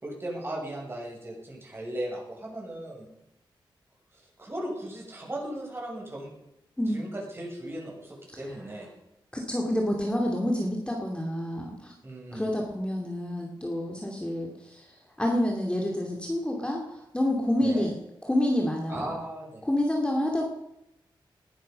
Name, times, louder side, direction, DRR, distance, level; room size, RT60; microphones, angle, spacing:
voice 1, 0.0-3.1 4.1-6.3 6.9-8.9 12.0-12.5 17.6-17.9 18.9-19.6, right 1 dB, 25° right, -2 dB, 6.9 m, -37 dB
voice 2, 9.3-11.9 12.3-17.9 18.2-19.1 19.6-20.5, left 1 dB, 10° left, 0 dB, 2.6 m, -28 dB
20.0 x 11.5 x 5.3 m, 0.84 s
cardioid pair, 85°, 9 cm